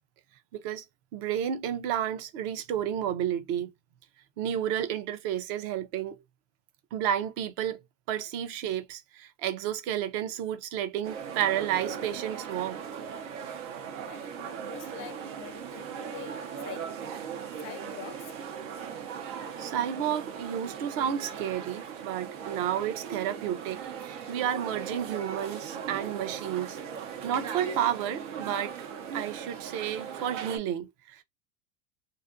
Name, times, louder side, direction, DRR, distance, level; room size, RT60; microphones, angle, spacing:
voice 1, 0.5-0.8 1.1-3.7 4.4-6.2 6.9-7.8 8.1-12.8 19.6-26.8 27.2-28.7 29.1-31.2, right 10 dB, 40° right, 0.4 m, -31 dB
sound 1, 11.0-30.6, right 7 dB, 85° right, 0.8 m, -38 dB
voice 2, 14.0-17.0 17.6-18.4, left 13 dB, 35° left, 0.4 m, -46 dB
2.4 x 2.4 x 2.5 m
supercardioid pair, 145°, 37 cm